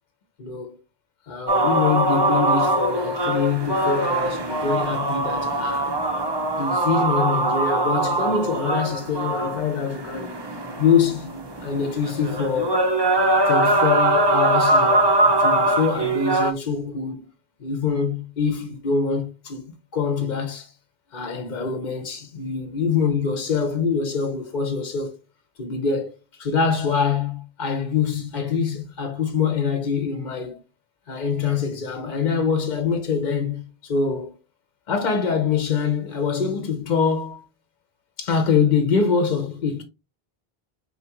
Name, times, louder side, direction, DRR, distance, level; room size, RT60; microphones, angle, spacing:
voice 1, 0.4-0.8 1.3-6.0 6.6-10.4 10.8-11.4 11.6-12.8 13.5-17.3 17.6-20.7 21.1-25.2 25.6-30.6 31.1-34.4 34.9-37.4 38.2-39.8, left 5 dB, 50° left, 0.8 m, -24 dB
sound 1, 1.5-16.5, right 1 dB, 30° right, 0.7 m, -22 dB
4.1 x 3.5 x 2.9 m
omnidirectional pair, 1.0 m